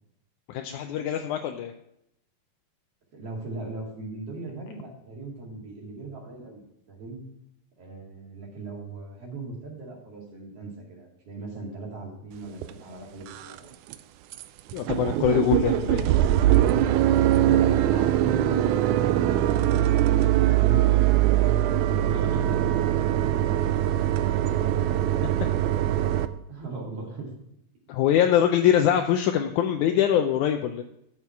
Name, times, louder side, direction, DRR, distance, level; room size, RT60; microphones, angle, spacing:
voice 1, 0.5-1.7 14.7-16.1 22.1-22.4 27.9-30.8, left 10 dB, 80° left, 5 dB, 1.9 m, -23 dB
voice 2, 3.1-6.6 6.9-7.2 7.8-13.7 17.2-19.8 20.2-21.0 21.9-25.0 26.5-27.3, right 3 dB, 50° right, -2 dB, 3.4 m, -38 dB
sound 1, 12.6-12.7 13.2-13.6 13.9-14.0 14.3-14.4 14.7-26.3, right 13 dB, 80° right, 1.8 m, -22 dB
12.0 x 6.0 x 4.6 m, 0.79 s
omnidirectional pair, 3.8 m